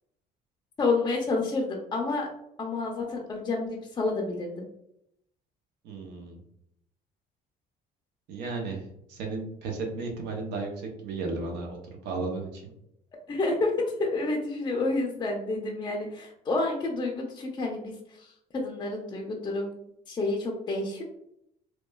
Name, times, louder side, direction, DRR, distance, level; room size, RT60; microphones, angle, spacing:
voice 1, 0.8-2.3 2.6-4.7 13.3-19.8 20.1-21.0, left 3 dB, 25° left, 0 dB, 0.4 m, -29 dB
voice 2, 5.8-6.4 8.3-11.8 12.0-12.7, right 3 dB, 90° right, 2 dB, 0.6 m, -34 dB
2.9 x 2.1 x 2.2 m, 0.77 s
cardioid pair, 110°, 17 cm